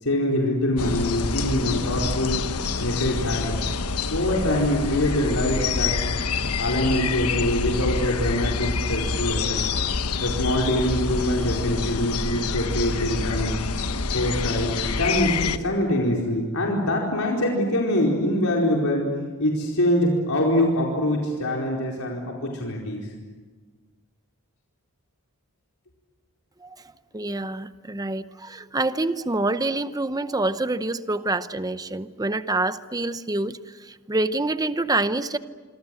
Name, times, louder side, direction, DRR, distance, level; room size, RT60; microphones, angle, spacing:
voice 1, 0.0-2.5 2.8-3.5 4.1-6.0 6.6-9.6 10.2-13.5 14.1-19.1 19.4-23.1, left 1 dB, 70° left, -2 dB, 4.6 m, -24 dB
sound 1, 0.8-15.6, left 4 dB, 85° left, 1.2 m, -27 dB
voice 2, 27.1-35.4, right 2 dB, 15° right, 12 dB, 0.8 m, -26 dB
26.5 x 26.0 x 7.8 m, 1.4 s
head